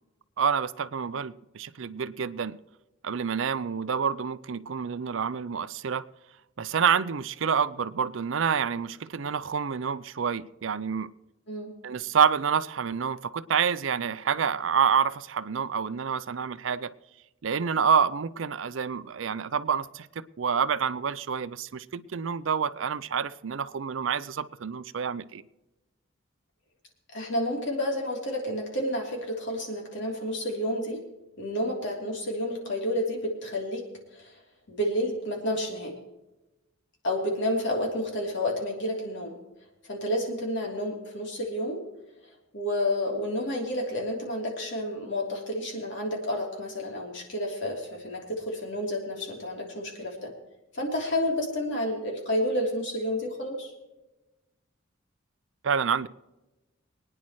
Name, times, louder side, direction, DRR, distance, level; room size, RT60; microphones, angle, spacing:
voice 1, 0.4-2.6 3.0-6.0 6.6-11.1 11.8-16.9 17.4-20.1 20.4-25.4 55.6-56.1, right 7 dB, 70° right, 0.5 m, -28 dB
voice 2, 27.1-31.0 31.4-33.8 34.1-34.3 34.7-35.9 37.0-39.4 39.9-41.8 42.5-50.3 50.7-53.7, left 1 dB, 65° left, 3.3 m, -30 dB
24.0 x 9.8 x 3.1 m
head